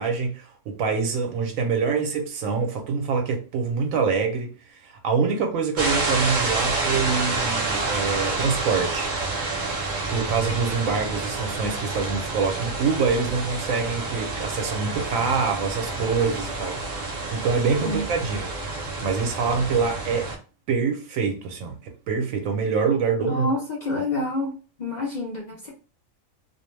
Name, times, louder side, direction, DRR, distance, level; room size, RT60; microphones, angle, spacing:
voice 1, 0.0-9.1 10.1-16.8 17.3-18.5 19.0-20.3 20.7-23.5, right 5 dB, 75° right, 1.0 m, -25 dB
sound 1, 5.8-20.4, right 3 dB, 45° right, 0.7 m, -28 dB
voice 2, 23.2-25.7, left 2 dB, 55° left, 0.5 m, -28 dB
2.5 x 2.1 x 3.1 m
omnidirectional pair, 1.4 m